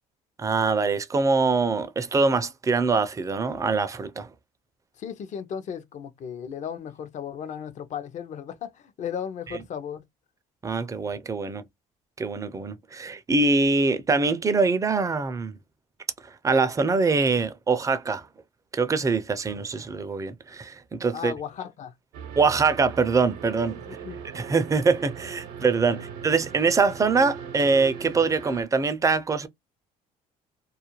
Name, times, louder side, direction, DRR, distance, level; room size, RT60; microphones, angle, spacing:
voice 1, 0.4-4.3 10.6-11.6 12.2-15.5 16.4-18.2 18.7-21.3 22.4-23.8 24.3-29.5, right 4 dB, 20° right, 0.4 m, -24 dB
voice 2, 5.0-10.0 21.1-21.9 23.9-24.2 25.9-26.0, left 8 dB, 50° left, 0.6 m, -35 dB
sound 1, 22.1-28.6, right 7 dB, 80° right, 0.7 m, -39 dB
2.4 x 2.1 x 2.9 m
supercardioid pair, 85°, 16 cm